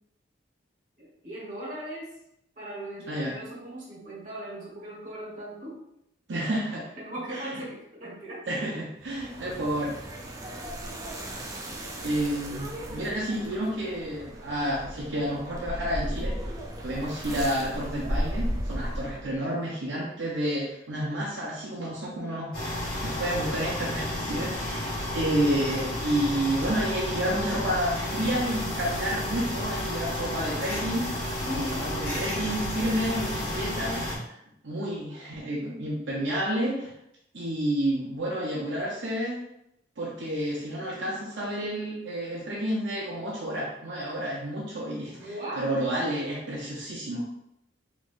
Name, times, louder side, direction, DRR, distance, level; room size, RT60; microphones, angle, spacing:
voice 1, 1.0-2.1 2.6-5.8 7.0-8.4 8.7-8.8 31.4-31.9 45.1-45.7, right 1 dB, 40° right, -5 dB, 1.3 m, -38 dB
voice 2, 3.1-3.4 6.3-6.9 7.3-7.5 8.5-10.1 10.4-10.5 12.0-16.4 16.8-22.5 23.0-31.0 31.5-34.3 34.6-36.9 37.3-39.4 40.0-45.3 45.6-47.3, right 1 dB, 75° right, -5 dB, 0.7 m, -30 dB
sound 1, 9.0-19.4, equal, 20° right, 0.4 m, -35 dB
sound 2, 22.5-34.1, left 1 dB, 50° left, 1.4 m, -32 dB
3.6 x 3.0 x 2.5 m, 0.79 s
head